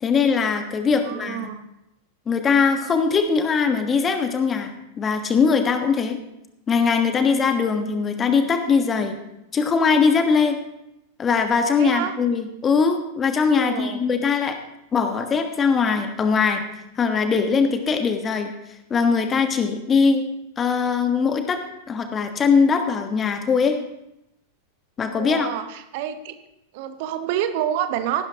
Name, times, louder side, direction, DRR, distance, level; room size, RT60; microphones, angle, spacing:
voice 1, 0.0-1.5 2.3-4.7 5.0-6.2 6.7-9.1 9.5-10.6 11.2-14.6 14.9-16.6 17.0-18.5 18.9-20.2 20.6-21.6 21.9-23.7 25.0-25.5, left 5 dB, 20° left, 7 dB, 1.4 m, -21 dB
voice 2, 1.0-1.7 11.8-12.1 13.5-14.0 25.1-26.3 26.7-28.3, right 10 dB, 50° right, 10 dB, 0.9 m, -28 dB
15.5 x 12.0 x 2.9 m, 0.87 s
figure-of-eight pair, 90°, 0 cm